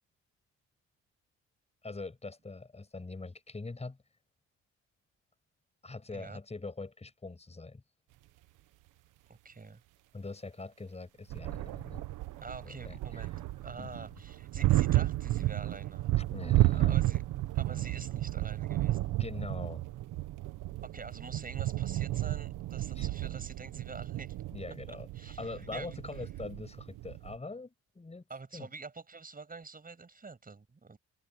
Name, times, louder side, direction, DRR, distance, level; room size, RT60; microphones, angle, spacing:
voice 1, 1.8-4.0 5.8-7.8 10.1-12.0 12.6-13.0 13.8-13.9 16.3-17.0 19.2-19.8 23.0-23.1 24.5-28.2 28.5-28.7, left 3 dB, 20° left, 6.8 m, -43 dB
voice 2, 9.3-9.8 12.4-13.3 13.6-16.1 16.7-17.2 17.5-19.1 20.8-24.4 24.9-26.3 28.3-31.0, right 4 dB, 30° right, 7.3 m, -47 dB
sound 1, 11.3-27.4, right 16 dB, 90° right, 1.3 m, -32 dB
cardioid pair, 90°, 30 cm